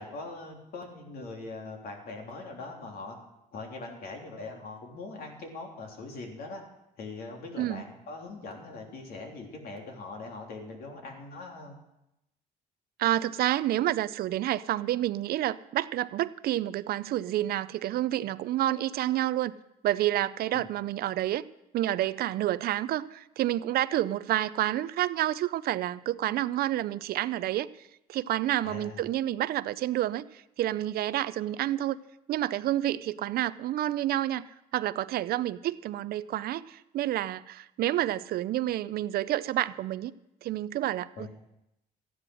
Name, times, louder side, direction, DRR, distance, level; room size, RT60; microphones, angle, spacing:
voice 1, 0.0-3.2 3.5-6.6 7.0-11.8 20.5-20.7 28.6-29.1 41.2-41.3, left 3 dB, 65° left, 1 dB, 3.3 m, -41 dB
voice 2, 13.0-19.5 19.8-21.4 21.7-27.7 28.1-32.0 32.3-34.4 34.7-40.1 40.4-41.3, right 13 dB, 65° right, 17 dB, 0.5 m, -29 dB
14.0 x 10.0 x 6.3 m, 0.88 s
cardioid pair, 110°, 17 cm